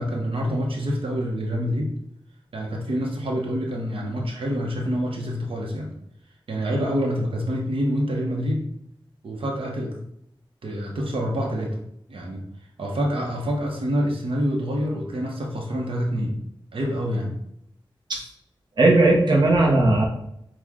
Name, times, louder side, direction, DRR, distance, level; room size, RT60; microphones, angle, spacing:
voice 1, 0.0-1.9 2.5-5.9 6.5-8.6 9.2-9.9 10.6-11.8 12.1-12.4 12.8-16.4 16.7-17.4, equal, 80° right, -1 dB, 0.9 m, -26 dB
voice 2, 18.8-20.1, right 2 dB, 55° right, -2 dB, 0.9 m, -17 dB
6.2 x 2.4 x 3.6 m, 0.75 s
wide cardioid pair, 95°, 9 cm